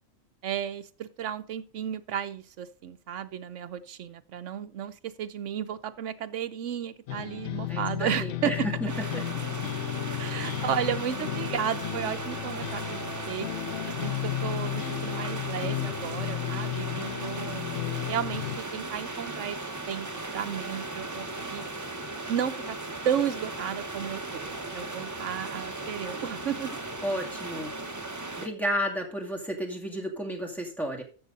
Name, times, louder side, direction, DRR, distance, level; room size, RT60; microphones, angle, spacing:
voice 1, 0.4-8.7 10.1-13.5 14.0-17.6 18.1-19.6 19.9-21.7 22.3-22.8 23.0-26.8, right 9 dB, 65° right, 9 dB, 1.1 m, -33 dB
sound 1, 7.1-18.6, left 14 dB, 65° left, 0.9 m, -34 dB
voice 2, 7.7-8.7 9.1-9.2 27.0-27.7 28.4-31.0, equal, ahead, 1 dB, 2.3 m, -32 dB
sound 2, 8.9-28.5, right 2 dB, 15° right, 0.7 m, -37 dB
13.0 x 6.4 x 4.0 m, 0.37 s
omnidirectional pair, 1.4 m